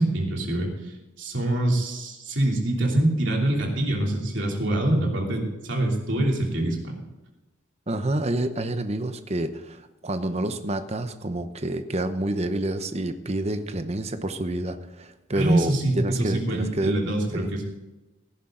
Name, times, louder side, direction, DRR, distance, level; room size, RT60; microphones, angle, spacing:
voice 1, 0.0-6.9 15.3-17.6, right 1 dB, 75° right, 0 dB, 3.1 m, -25 dB
voice 2, 7.9-16.9 17.3-17.5, right 1 dB, 35° right, 9 dB, 0.9 m, -28 dB
17.0 x 10.5 x 3.9 m, 1.1 s
head